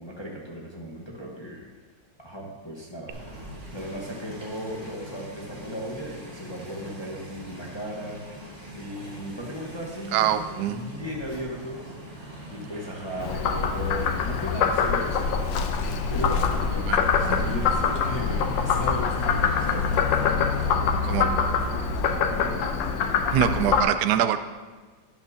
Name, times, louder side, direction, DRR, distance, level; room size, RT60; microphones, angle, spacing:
voice 1, 0.0-1.7 2.2-3.2 3.7-11.9 12.5-15.4 16.1-19.9 20.7-21.3 22.3-22.6, equal, 20° left, -3 dB, 0.9 m, -36 dB
sound 1, 3.1-20.7, equal, 20° right, 2.0 m, -42 dB
voice 2, 10.1-10.8 16.9-17.4 21.1-21.3 23.3-24.4, right 10 dB, 70° right, 10 dB, 1.0 m, -24 dB
Frog, 13.2-23.8, left 6 dB, 85° left, 1.4 m, -24 dB
11.5 x 9.4 x 2.8 m, 1.3 s
omnidirectional pair, 2.0 m